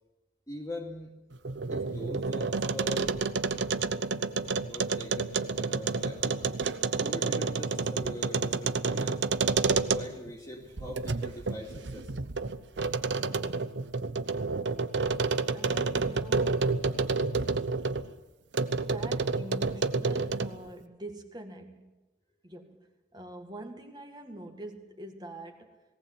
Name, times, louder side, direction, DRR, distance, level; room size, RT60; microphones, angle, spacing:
voice 1, 0.5-1.1 1.7-3.3 4.6-6.4 7.0-9.2 9.7-12.1, left 1 dB, 20° left, -1 dB, 2.4 m, -42 dB
sound 1, 1.3-10.3 10.8-18.1 18.5-20.6, right 4 dB, 75° right, 0.9 m, -29 dB
voice 2, 15.5-16.7 18.7-21.9 22.4-25.8, right 1 dB, 25° right, 5 dB, 2.0 m, -45 dB
19.0 x 17.5 x 8.0 m, 1.1 s
head